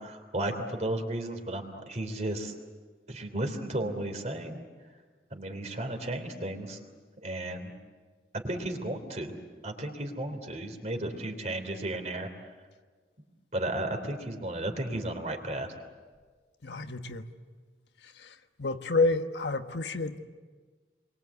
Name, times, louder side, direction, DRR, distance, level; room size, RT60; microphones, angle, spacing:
voice 1, 0.0-2.5 3.1-4.7 5.3-6.8 7.2-7.7 8.4-9.4 9.6-12.3 13.5-15.7, right 1 dB, 40° right, 3.2 m, -34 dB
voice 2, 16.6-17.2 18.2-20.2, left 3 dB, 80° left, 1.3 m, -29 dB
29.5 x 23.0 x 8.3 m
head